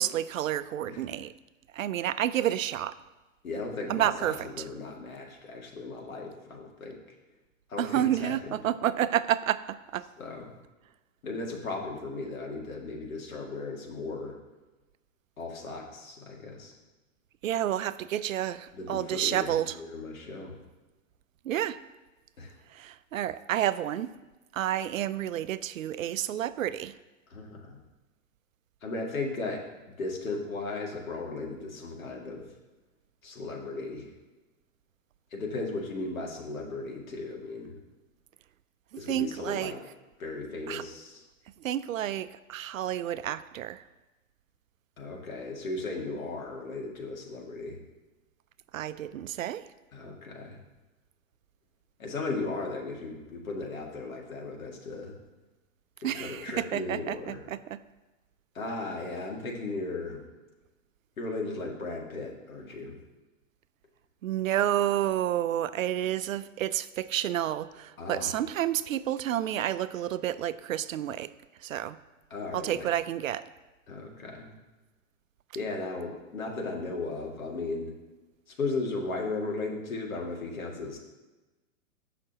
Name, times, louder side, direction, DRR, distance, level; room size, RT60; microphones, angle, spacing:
voice 1, 0.0-1.3 1.7-3.0 3.9-4.6 7.8-10.1 17.4-19.8 21.4-21.8 22.7-24.1 24.5-27.0 39.1-39.8 40.7-40.8 41.6-43.8 48.7-49.7 56.0-57.8 64.2-71.3 71.6-72.0 72.5-73.5, right 11 dB, 75° right, 14 dB, 0.6 m, -30 dB
voice 2, 3.4-7.0 7.7-8.6 10.2-10.5 11.2-14.3 15.4-16.7 18.7-20.6 22.4-22.5 27.3-27.8 28.8-29.6 30.0-32.4 33.2-34.1 35.3-37.8 39.0-39.8 40.2-41.2 45.0-47.8 49.9-50.6 52.0-55.1 56.0-57.4 58.5-60.2 61.2-63.0 68.0-68.3 72.3-72.9 73.9-74.5 75.5-77.9 78.6-81.0, left 3 dB, 85° left, 0 dB, 2.4 m, -36 dB
16.0 x 5.9 x 2.9 m, 1.1 s
hypercardioid pair, 145°, 40 cm